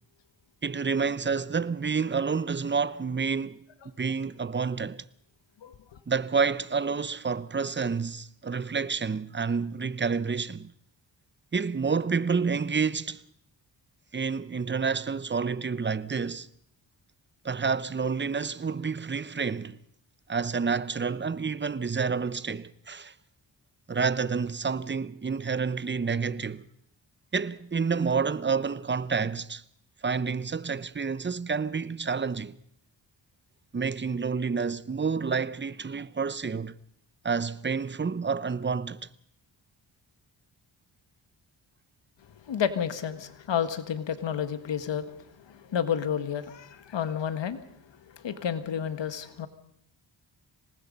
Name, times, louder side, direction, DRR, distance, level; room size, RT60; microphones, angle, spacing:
voice 1, 0.6-3.6 4.0-5.0 6.1-10.7 11.5-13.2 14.1-16.5 17.4-19.8 20.3-23.1 23.9-26.7 27.3-29.6 30.0-32.6 33.7-36.8 37.2-39.1, right 5 dB, 25° right, 0.8 m, -29 dB
voice 2, 42.3-49.5, left 8 dB, 75° left, 1.7 m, -31 dB
25.5 x 19.5 x 5.4 m
cardioid pair, 65°, 44 cm